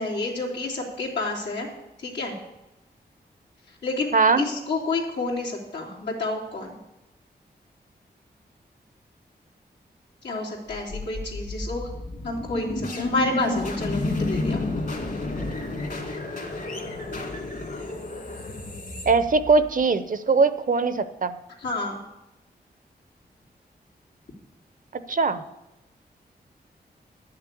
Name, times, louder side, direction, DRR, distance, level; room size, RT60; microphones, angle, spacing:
voice 1, 0.0-1.7 2.0-2.4 3.7-6.8 10.2-11.9 12.2-14.6 21.6-22.0, left 2 dB, 90° left, -4 dB, 3.1 m, -29 dB
voice 2, 4.1-4.4 19.1-21.4 24.9-25.4, right 4 dB, 50° right, 12 dB, 0.8 m, -21 dB
sound 1, 10.7-19.8, left 2 dB, 55° left, 2.5 m, -31 dB
11.0 x 6.8 x 8.4 m, 0.95 s
cardioid pair, 75°, 17 cm